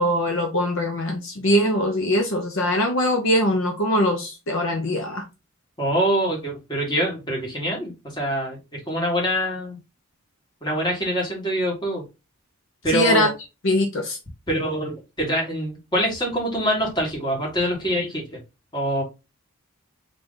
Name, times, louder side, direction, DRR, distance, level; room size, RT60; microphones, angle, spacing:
voice 1, 0.0-5.2 12.9-13.3 13.6-14.2, left 1 dB, 60° left, 0.7 m, -22 dB
voice 2, 5.8-9.8 10.6-12.0 12.8-13.3 14.5-18.4 18.7-19.0, equal, 20° left, 1.8 m, -25 dB
3.8 x 3.3 x 3.8 m
head